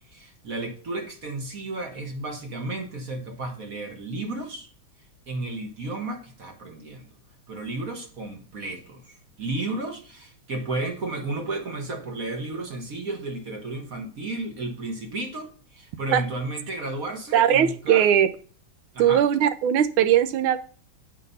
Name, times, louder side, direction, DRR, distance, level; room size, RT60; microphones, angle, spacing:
voice 1, 0.1-4.7 5.3-7.1 7.5-18.1 18.9-19.2, right 2 dB, 45° right, 3 dB, 1.6 m, -33 dB
voice 2, 17.3-18.3 19.0-20.6, right 10 dB, 85° right, 10 dB, 1.5 m, -19 dB
8.3 x 4.8 x 5.5 m, 0.41 s
omnidirectional pair, 2.2 m